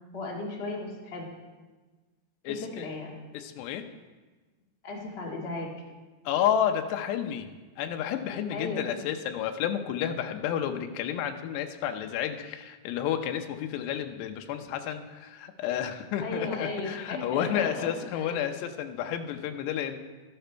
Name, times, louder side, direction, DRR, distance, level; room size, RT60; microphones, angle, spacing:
voice 1, 0.1-1.3 2.5-3.2 4.8-5.7 8.5-9.0 16.2-17.9 18.1-18.4, left 3 dB, 45° left, -2 dB, 0.7 m, -35 dB
voice 2, 2.4-2.9 3.3-3.8 6.3-7.5 7.8-20.0, left 9 dB, 85° left, 6 dB, 2.9 m, -31 dB
13.0 x 12.0 x 4.5 m, 1.3 s
omnidirectional pair, 4.8 m